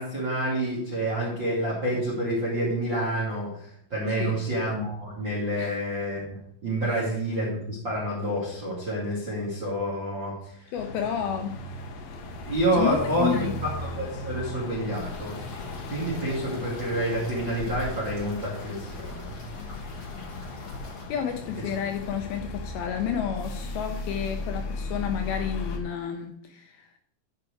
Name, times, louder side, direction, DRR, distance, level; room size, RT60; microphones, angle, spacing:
voice 1, 0.0-6.4 6.6-10.7 12.4-15.4 15.9-19.4, right 1 dB, 35° right, -5 dB, 2.2 m, -28 dB
voice 2, 10.7-11.6 12.8-13.6 21.1-27.0, left 8 dB, 90° left, 4 dB, 2.1 m, -31 dB
sound 1, 10.8-25.8, left 2 dB, 70° left, 2.2 m, -36 dB
sound 2, 14.9-21.0, left 2 dB, 40° left, 3.2 m, -48 dB
12.5 x 4.7 x 4.6 m, 0.68 s
omnidirectional pair, 5.2 m